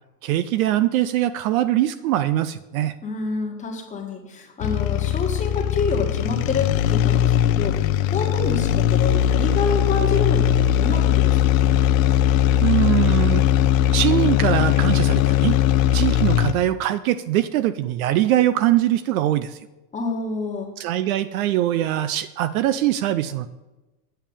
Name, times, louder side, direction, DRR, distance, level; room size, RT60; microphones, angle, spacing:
voice 1, 0.2-2.9 12.6-13.4 13.9-15.6 15.9-19.6 20.8-23.5, right 13 dB, 60° right, 14 dB, 0.6 m, -22 dB
voice 2, 3.0-11.8 19.9-20.7, left 4 dB, 15° left, 0 dB, 1.7 m, -28 dB
sound 1, 4.6-16.7, left 11 dB, 55° left, 0.6 m, -19 dB
8.9 x 5.2 x 7.2 m, 1.1 s
supercardioid pair, 145°, 49 cm